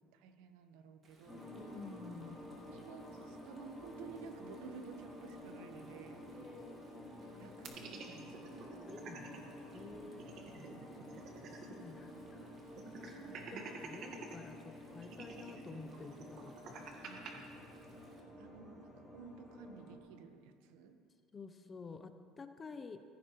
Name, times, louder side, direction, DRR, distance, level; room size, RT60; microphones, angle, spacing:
voice 1, 0.0-1.6 2.6-6.4 7.4-8.7 10.1-10.3 13.1-13.8 17.0-17.5 18.4-21.0, right 6 dB, 80° right, 8 dB, 1.0 m, -54 dB
Stream, 1.0-18.2, right 2 dB, 25° right, 1.9 m, -67 dB
sound 1, 1.3-20.0, left 1 dB, 5° left, 2.0 m, -51 dB
voice 2, 1.6-2.4 6.3-6.9 8.9-10.6 11.5-12.6 13.0-16.9 17.3-17.5 21.3-23.0, left 4 dB, 20° left, 9 dB, 0.6 m, -51 dB
sound 2, 7.6-9.4 9.7-9.8 10.1-11.9 12.2-12.3 12.8-14.4 15.0-17.3, right 5 dB, 45° right, 1.5 m, -49 dB
15.5 x 14.5 x 3.1 m, 2.2 s
cardioid pair, 150°, 0 cm